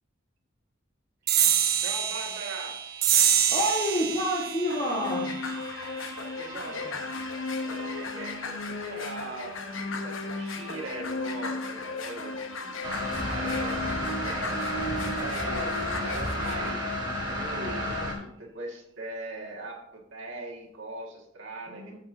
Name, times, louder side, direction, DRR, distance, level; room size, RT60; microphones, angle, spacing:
sound 1, 1.3-8.1, right 9 dB, 50° right, 0.7 m, -28 dB
voice 1, 1.7-2.7 6.4-6.9 7.6-9.5 9.9-14.9 15.2-15.7 16.0-21.9, right 2 dB, 75° right, -3 dB, 1.9 m, -40 dB
voice 2, 3.5-5.3 6.8-7.0 21.7-21.9, equal, 25° left, -6 dB, 1.5 m, -28 dB
sound 2, 4.7-16.7, left 3 dB, 80° left, 1.0 m, -35 dB
sound 3, 12.8-18.1, left 1 dB, 20° right, 1.6 m, -31 dB
14.0 x 5.4 x 2.8 m, 0.77 s
head